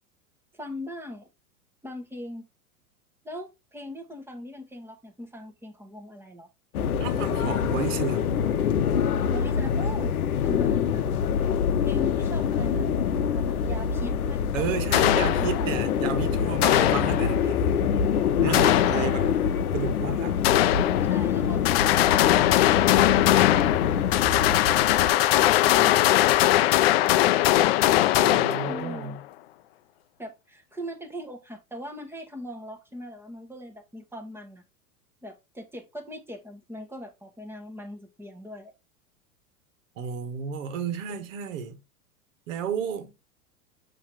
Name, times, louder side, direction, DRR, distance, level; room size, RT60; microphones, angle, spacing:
voice 1, 0.5-1.3 1.8-2.5 3.2-6.5 9.3-11.1 11.8-12.9 13.3-15.1 15.4-15.7 28.7-29.2 30.2-34.6 35.2-38.7, left 1 dB, 5° right, 1.3 m, -40 dB
sound 1, 6.7-25.1, left 8 dB, 70° left, 0.8 m, -25 dB
voice 2, 7.0-8.5 14.5-17.6 18.4-19.4 19.7-20.3 28.1-29.2 40.0-41.8 42.5-43.1, right 7 dB, 55° right, 1.5 m, -32 dB
sound 2, 14.9-15.9 16.6-17.6 18.5-19.5 20.4-21.4 21.6-29.2, left 14 dB, 45° left, 0.5 m, -21 dB
7.3 x 3.1 x 4.5 m
figure-of-eight pair, 95°, 45 cm